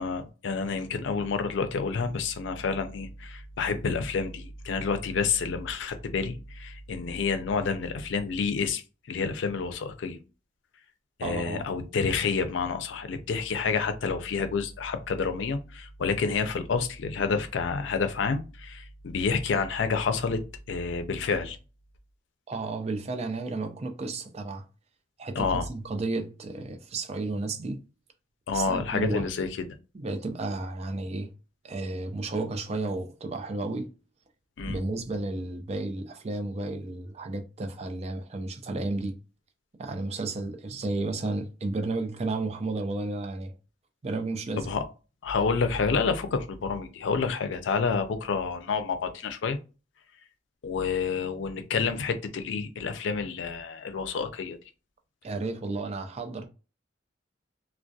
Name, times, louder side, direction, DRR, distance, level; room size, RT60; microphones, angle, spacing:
voice 1, 0.0-8.8 9.1-10.2 11.2-20.4 20.7-21.6 25.4-25.6 28.5-29.5 34.6-34.8 44.6-44.8 45.2-49.6 50.6-54.6, left 5 dB, 90° left, 0.4 m, -29 dB
voice 2, 11.2-11.6 22.5-24.6 25.2-27.8 28.5-29.3 29.9-31.3 31.6-33.9 34.7-39.2 39.8-43.6 44.0-44.7 55.2-56.5, right 2 dB, 35° right, 0.4 m, -32 dB
2.3 x 2.1 x 2.6 m
head